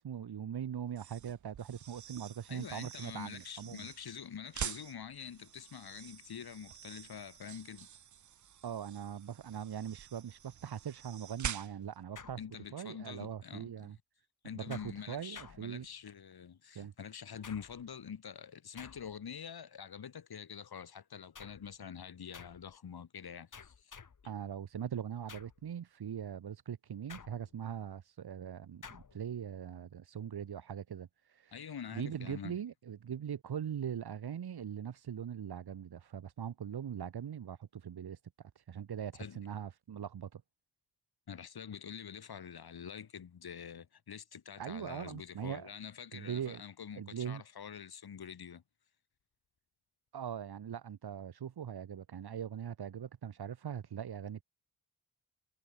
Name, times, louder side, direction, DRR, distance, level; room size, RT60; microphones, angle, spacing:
voice 1, 0.0-3.8 8.6-12.4 12.7-14.0 14.5-15.9 16.8-16.9 24.2-40.4 44.6-45.7 46.1-46.6 47.0-47.4 50.1-54.4, right 8 dB, 85° right, 2.1 m, -41 dB
sound 1, 0.9-12.0, right 9 dB, 50° right, 0.7 m, -46 dB
voice 2, 2.5-7.9 12.4-13.9 14.4-24.0 31.5-32.5 39.2-39.4 41.3-48.6, left 7 dB, 75° left, 4.2 m, -46 dB
sound 2, 12.2-13.0 14.7-16.2 17.4-18.0 18.8-19.4 21.3-21.8 22.3-22.7 23.5-24.3 25.3-25.7 27.1-27.7 28.8-29.3, left 6 dB, 55° left, 3.4 m, -53 dB
wide cardioid pair, 105°, 38 cm